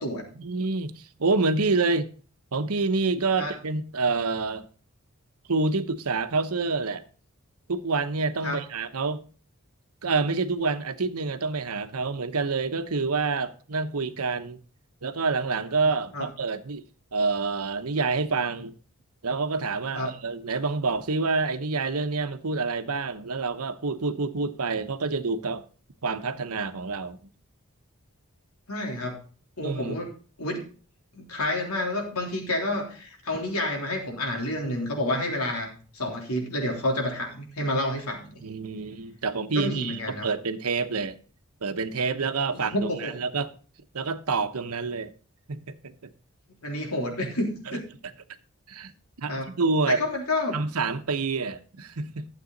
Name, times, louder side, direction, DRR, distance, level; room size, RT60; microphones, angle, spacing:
voice 1, 0.4-2.1 2.5-4.7 5.5-7.0 7.7-9.2 10.0-14.6 15.0-16.8 17.1-18.7 19.2-25.6 26.0-27.2 29.6-29.9 38.4-41.2 41.6-42.7 43.0-43.5 43.9-45.1 45.5-45.9 47.7-47.8 48.7-48.9 49.2-50.0 50.5-52.3, right 4 dB, 90° right, 1.0 m, -27 dB
voice 2, 28.7-29.2 29.6-30.1 30.4-30.6 31.1-38.4 39.5-40.3 42.7-43.1 46.6-47.8 49.3-49.5 49.9-50.6, left 1 dB, 85° left, 3.5 m, -29 dB
12.5 x 7.6 x 4.0 m
head